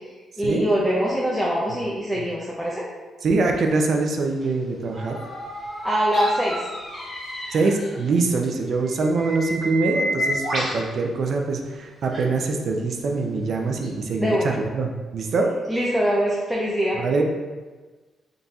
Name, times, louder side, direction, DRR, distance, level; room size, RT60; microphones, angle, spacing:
voice 1, 0.4-2.8 5.8-6.6 14.2-14.6 15.7-17.0, equal, ahead, -4 dB, 0.5 m, -23 dB
voice 2, 3.2-5.2 7.5-15.5 17.0-17.2, right 3 dB, 55° right, 2 dB, 0.5 m, -24 dB
sound 1, 4.4-4.5 8.4-8.5 8.9-10.8 12.1-12.2 13.8-13.9, right 1 dB, 40° right, 1.4 m, -27 dB
sound 2, 4.9-8.3 8.8-10.6, left 1 dB, 30° left, 1.2 m, -37 dB
4.0 x 3.9 x 2.3 m, 1.3 s
cardioid pair, 130°, 0 cm